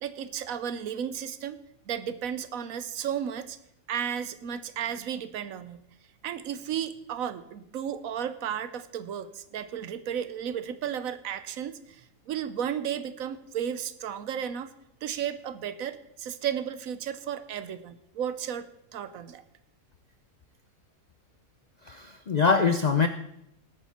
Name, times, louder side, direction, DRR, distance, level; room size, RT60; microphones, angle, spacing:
voice 1, 0.0-1.6 1.9-3.6 3.9-5.8 6.2-14.7 15.0-18.7 18.9-19.4, right 9 dB, 75° right, 14 dB, 1.1 m, -34 dB
voice 2, 21.9-23.1, left 5 dB, 60° left, 9 dB, 0.4 m, -23 dB
19.0 x 8.8 x 4.2 m, 0.80 s
omnidirectional pair, 1.5 m